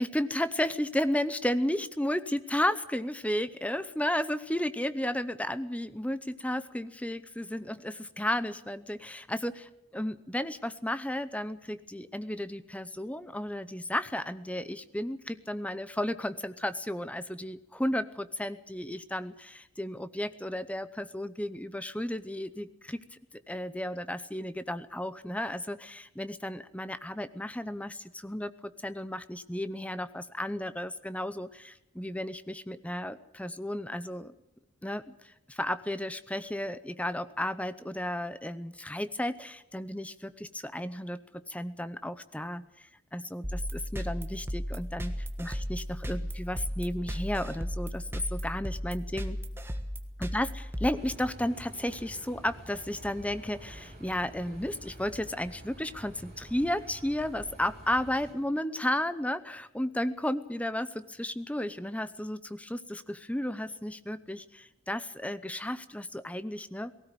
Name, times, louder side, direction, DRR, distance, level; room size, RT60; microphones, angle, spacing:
voice 1, 0.0-23.0 23.5-34.3 34.8-49.4 50.2-66.9, left 1 dB, 5° left, 13 dB, 0.7 m, -33 dB
sound 1, 43.4-51.6, equal, 10° right, 1.4 m, -35 dB
sound 2, 50.9-58.3, right 1 dB, 35° right, 5.9 m, -48 dB
18.5 x 16.5 x 9.1 m, 0.88 s
head